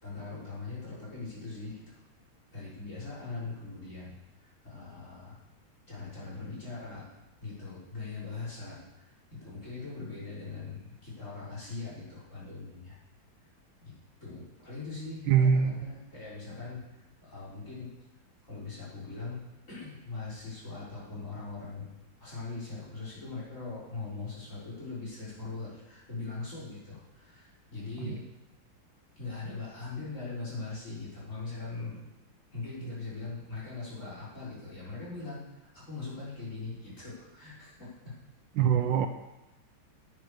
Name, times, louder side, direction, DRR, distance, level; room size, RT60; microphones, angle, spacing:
voice 1, 0.0-2.0 2.5-5.4 5.9-7.1 7.4-13.0 13.8-13.9 14.2-17.9 18.4-19.4 19.7-21.9 22.2-28.2 29.2-32.0 32.5-35.4 35.7-38.2, left 3 dB, 35° left, -7 dB, 4.7 m, -41 dB
voice 2, 15.3-15.8 28.0-28.2 38.6-39.1, right 7 dB, 75° right, 7 dB, 1.4 m, -23 dB
9.9 x 9.5 x 5.0 m, 0.96 s
omnidirectional pair, 2.3 m